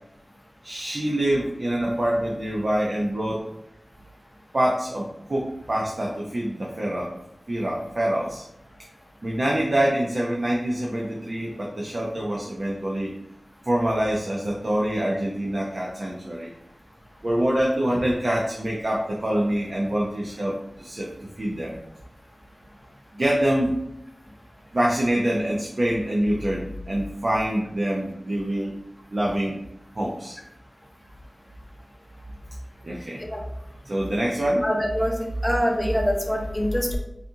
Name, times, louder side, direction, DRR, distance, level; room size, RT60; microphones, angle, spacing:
voice 1, 0.6-3.5 4.5-7.1 7.5-8.4 9.2-13.1 13.6-16.5 17.2-21.7 23.1-23.8 24.7-28.8 29.1-29.6 29.9-30.4 32.8-33.2 33.8-34.6, right 1 dB, 55° right, -3 dB, 0.5 m, -25 dB
voice 2, 34.6-35.2 35.4-37.0, equal, 5° left, 1 dB, 0.7 m, -24 dB
4.1 x 2.4 x 2.6 m, 0.84 s
wide cardioid pair, 55°, 0 cm